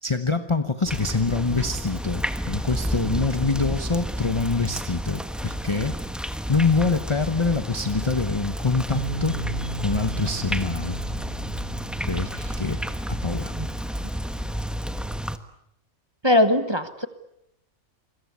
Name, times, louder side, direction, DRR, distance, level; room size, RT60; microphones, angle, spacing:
voice 1, 0.0-6.0 6.5-9.4 9.8-11.0 12.1-12.8 13.1-13.5, left 4 dB, 25° left, 10 dB, 1.0 m, -25 dB
sound 1, 0.9-15.4, equal, ahead, 1.2 m, -31 dB
Bass guitar, 9.0-15.2, right 3 dB, 80° right, 1.9 m, -37 dB
voice 2, 16.2-17.1, left 1 dB, 20° right, 10 dB, 1.4 m, -20 dB
29.0 x 22.5 x 8.4 m, 0.79 s
omnidirectional pair, 1.4 m